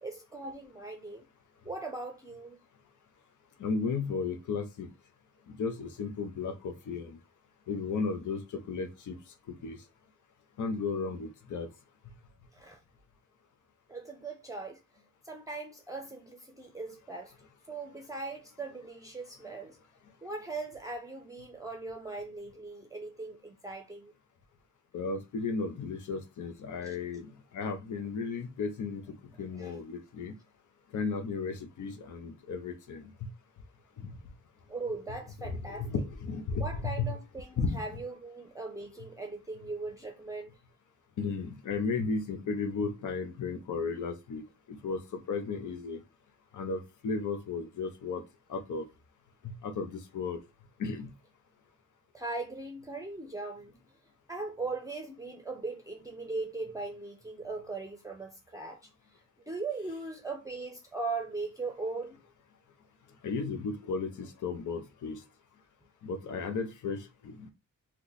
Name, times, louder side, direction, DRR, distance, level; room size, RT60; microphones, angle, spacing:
voice 1, 0.0-1.3 1.6-2.6 12.5-12.8 13.9-14.8 15.2-17.3 17.7-19.8 20.2-24.1 26.8-26.9 29.5-29.8 34.7-35.9 36.6-40.5 52.1-53.7 54.3-58.8 59.5-62.2, right 3 dB, 10° right, 0.6 m, -39 dB
voice 2, 3.6-4.9 5.6-7.2 7.7-9.2 9.6-9.8 10.6-11.7 24.9-27.3 27.5-29.0 29.4-30.3 30.9-33.0 35.4-37.1 37.6-37.8 41.2-44.4 44.7-46.0 46.5-48.2 48.5-48.8 49.4-50.4 50.8-51.1 63.2-65.2 66.0-67.5, left 4 dB, 75° left, 0.7 m, -34 dB
2.9 x 2.2 x 3.9 m
cardioid pair, 85°, 31 cm